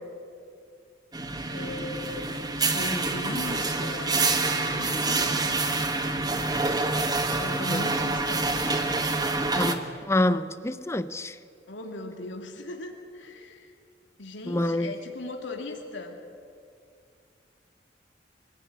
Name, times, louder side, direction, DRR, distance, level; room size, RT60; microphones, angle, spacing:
sound 1, 1.1-9.7, right 3 dB, 20° right, 1.3 m, -27 dB
voice 1, 1.5-4.3 4.6-5.3 7.4-8.8 11.7-13.7 14.2-16.2, left 2 dB, 85° left, 2.6 m, -38 dB
voice 2, 9.6-11.3 14.5-14.9, left 1 dB, 15° left, 0.7 m, -27 dB
24.5 x 17.0 x 9.5 m
head